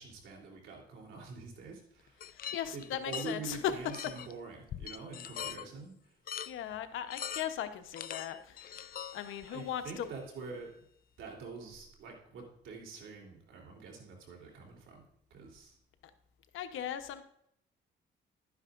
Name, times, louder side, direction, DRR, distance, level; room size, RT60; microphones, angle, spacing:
voice 1, 0.0-2.2 2.7-6.0 9.4-10.7 11.2-15.0 15.3-15.8, right 4 dB, 80° right, -1 dB, 3.3 m, -45 dB
sound 1, 2.2-3.4 3.9-4.3 4.7-5.7 6.3-6.5 7.0-7.7 7.9-9.6, left 9 dB, 45° left, 0.4 m, -42 dB
voice 2, 2.3-3.7 6.5-10.1 16.5-17.2, left 10 dB, 85° left, 9 dB, 1.0 m, -38 dB
12.0 x 9.6 x 2.5 m, 0.70 s
cardioid pair, 90°, 20 cm